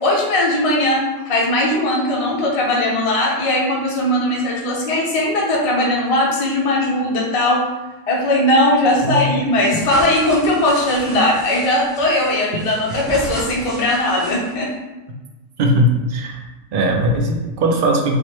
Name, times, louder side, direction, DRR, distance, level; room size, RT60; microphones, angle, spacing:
voice 1, 0.0-7.7 8.1-14.7, left 1 dB, 40° left, -2 dB, 0.5 m, -18 dB
sound 1, 9.6-14.7, equal, ahead, 0.7 m, -33 dB
voice 2, 15.6-16.4 16.7-18.2, right 1 dB, 60° right, 1 dB, 0.6 m, -18 dB
3.1 x 2.5 x 4.3 m, 1.1 s
omnidirectional pair, 1.4 m